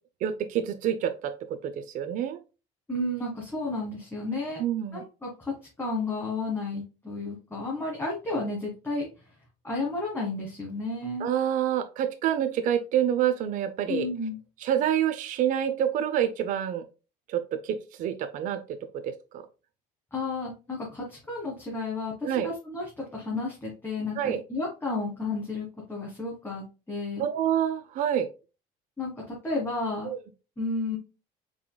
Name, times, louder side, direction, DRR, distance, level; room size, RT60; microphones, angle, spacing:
voice 1, 0.2-2.4 4.6-5.0 11.2-14.1 14.6-16.8 17.3-18.6 19.0-19.4 22.2-22.5 24.2-24.4 27.2-28.3 30.0-30.2, right 10 dB, 55° right, 9 dB, 0.6 m, -27 dB
voice 2, 2.9-4.6 4.9-9.1 9.6-11.3 13.9-14.4 20.1-27.2 29.0-30.1 30.6-31.0, left 2 dB, 15° left, -3 dB, 1.5 m, -32 dB
4.9 x 3.8 x 2.2 m, 0.31 s
cardioid pair, 125°, 16 cm